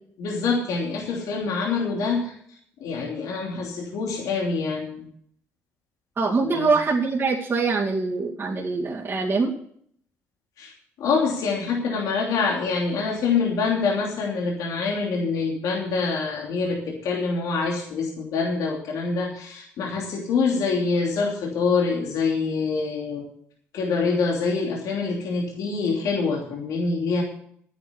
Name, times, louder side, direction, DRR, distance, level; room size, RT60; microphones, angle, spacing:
voice 1, 0.2-2.3 2.8-5.0 6.4-6.7 10.6-10.7 11.0-23.3 23.7-27.2, left 4 dB, 75° left, -1 dB, 2.9 m, -25 dB
voice 2, 6.2-9.5, right 4 dB, 35° right, -5 dB, 2.4 m, -23 dB
10.0 x 9.4 x 6.9 m, 0.64 s
supercardioid pair, 60°, 6 cm